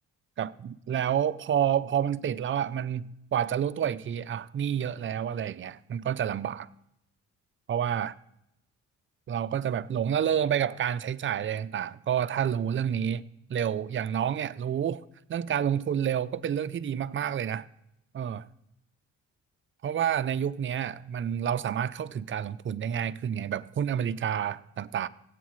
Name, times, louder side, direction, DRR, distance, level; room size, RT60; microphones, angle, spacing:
voice 1, 0.4-6.7 7.7-8.1 9.3-13.2 13.5-15.0 15.3-17.6 18.1-18.5 19.8-25.1, right 9 dB, 40° right, 0.5 m, -29 dB
17.0 x 8.2 x 3.2 m
cardioid pair, 90°, 30 cm